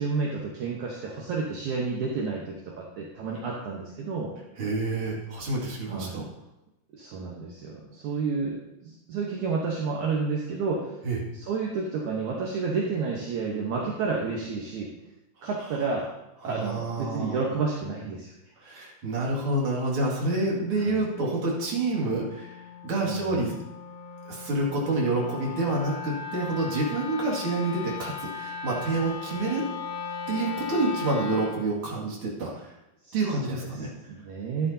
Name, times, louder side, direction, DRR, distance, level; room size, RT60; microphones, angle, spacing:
voice 1, 0.0-4.3 5.9-6.2 6.9-11.0 11.3-14.9 15.4-16.1 16.4-18.3 20.8-21.1 23.0-23.5 33.1-33.8 34.1-34.7, right 4 dB, 65° right, -3 dB, 2.4 m, -30 dB
voice 2, 4.6-6.3 11.0-11.2 16.4-17.4 18.6-22.6 22.8-23.5 24.3-29.6 30.3-32.7 33.1-33.9, right 2 dB, 45° right, -4 dB, 2.8 m, -28 dB
Wind instrument woodwind instrument, 20.1-31.7, left 6 dB, 60° left, 1.5 m, -38 dB
12.5 x 9.3 x 2.8 m, 0.92 s
omnidirectional pair, 3.9 m